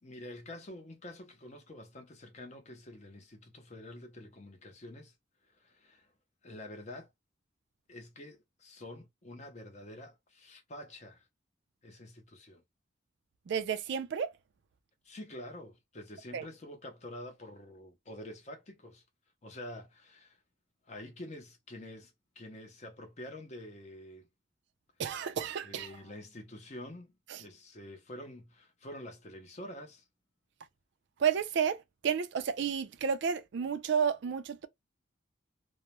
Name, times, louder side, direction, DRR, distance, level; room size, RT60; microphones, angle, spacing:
voice 1, 0.0-5.1 5.4-6.1 6.4-7.1 7.9-11.3 11.8-12.6 15.0-19.0 19.4-20.4 20.9-24.3 25.6-30.0, left 1 dB, 35° left, 0.6 m, -47 dB
voice 2, 13.5-14.3 16.3-16.5 25.0-25.9 27.3-27.4 31.2-34.7, right 7 dB, 60° right, 0.4 m, -31 dB
2.2 x 2.0 x 2.9 m
head